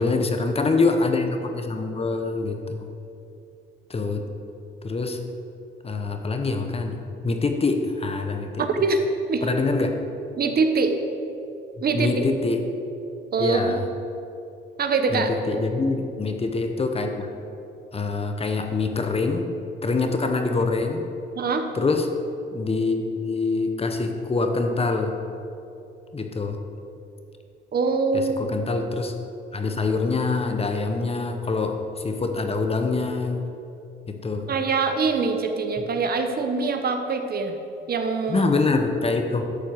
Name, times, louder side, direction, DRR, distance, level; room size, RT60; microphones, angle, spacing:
voice 1, 0.0-2.9 3.9-4.3 4.8-5.2 5.8-8.7 9.4-10.0 11.9-12.6 13.4-13.8 15.1-17.3 17.9-19.5 19.8-21.0 21.7-22.1 22.5-25.1 26.1-26.6 28.1-29.1 29.5-33.4 34.1-34.5 35.8-35.9 38.3-39.5, left 3 dB, 30° left, 5 dB, 1.0 m, -25 dB
voice 2, 8.6-9.0 9.3-9.4 10.4-10.9 11.8-12.2 13.3-13.8 14.8-15.3 21.4-21.7 27.7-28.5 34.5-37.6 37.9-38.5, right 4 dB, 50° right, 6 dB, 1.0 m, -23 dB
11.5 x 4.5 x 8.0 m, 2.7 s
cardioid pair, 90°, 20 cm